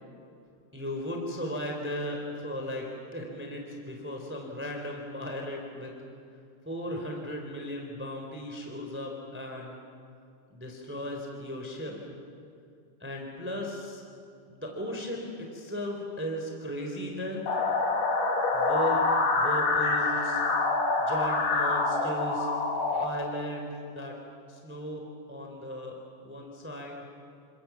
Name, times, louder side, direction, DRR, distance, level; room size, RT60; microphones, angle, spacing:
voice 1, 0.7-5.9 6.6-9.8 10.5-11.9 13.0-14.0 14.5-17.4 18.5-19.0 19.3-20.4 21.0-22.5 22.9-24.2 24.5-25.9 26.2-27.1, equal, 5° right, 1 dB, 3.0 m, -36 dB
sound 1, 17.5-23.0, left 3 dB, 75° left, 3.9 m, -26 dB
28.5 x 26.0 x 7.2 m, 2.5 s
omnidirectional pair, 3.7 m